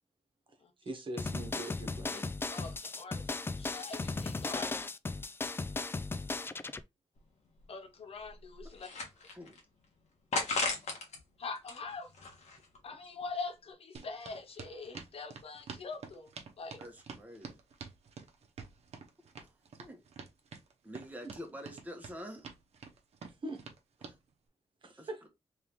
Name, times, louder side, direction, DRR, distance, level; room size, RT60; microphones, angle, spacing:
voice 1, 0.8-2.3 3.2-3.3 21.2-21.3 23.4-23.6 24.8-25.2, right 1 dB, 50° right, 1.2 m, -42 dB
sound 1, 1.2-6.8, left 3 dB, 20° left, 0.3 m, -36 dB
voice 2, 2.5-3.2 3.6-4.7 7.7-8.9 11.4-12.1 12.8-16.3 16.6-16.8, left 4 dB, 60° left, 0.7 m, -43 dB
sound 2, 7.2-7.3 7.6-7.7 8.3-9.6 10.3-11.2 11.6-12.8, left 3 dB, 80° left, 1.3 m, -35 dB
voice 3, 9.3-9.6 16.8-17.6 19.4-19.5 19.8-20.0 20.8-22.5 24.0-24.1 25.0-25.3, equal, 15° right, 1.2 m, -47 dB
sound 3, 14.0-24.2, right 5 dB, 70° right, 0.8 m, -48 dB
3.5 x 3.3 x 3.0 m
wide cardioid pair, 115°, 11 cm